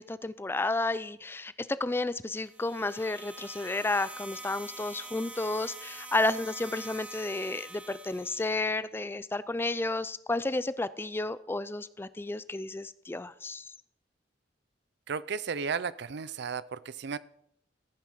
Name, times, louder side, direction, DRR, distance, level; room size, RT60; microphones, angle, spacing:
voice 1, 0.0-13.7, left 2 dB, 10° left, 16 dB, 0.4 m, -32 dB
sound 1, 2.4-8.6, right 2 dB, 5° right, 0.8 m, -45 dB
voice 2, 15.1-17.2, right 6 dB, 60° right, 18 dB, 0.5 m, -34 dB
14.5 x 9.3 x 4.8 m, 0.73 s
head